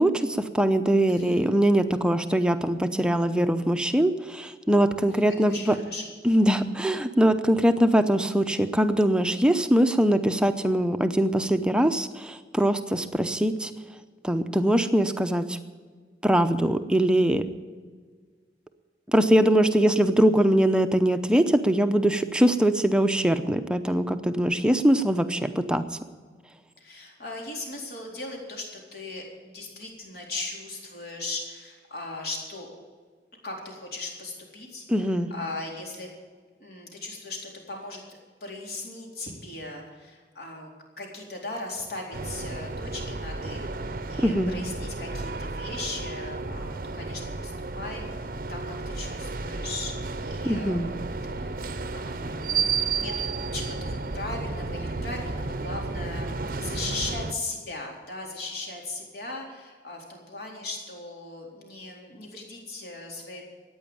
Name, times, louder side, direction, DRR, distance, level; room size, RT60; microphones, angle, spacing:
voice 1, 0.0-5.7 6.2-13.7 14.2-15.6 16.2-17.4 19.1-25.8 34.9-35.3 44.2-44.6 50.4-50.9, right 1 dB, 5° right, 8 dB, 0.7 m, -22 dB
voice 2, 1.1-1.5 5.0-6.1 26.8-32.7 33.4-36.1 36.6-38.0 38.4-40.7 41.0-50.9 51.3-51.6 51.9-63.4, left 2 dB, 60° left, -1 dB, 4.0 m, -38 dB
sound 1, 42.1-57.3, right 4 dB, 50° right, 0.7 m, -32 dB
14.5 x 9.5 x 8.7 m, 1.5 s
head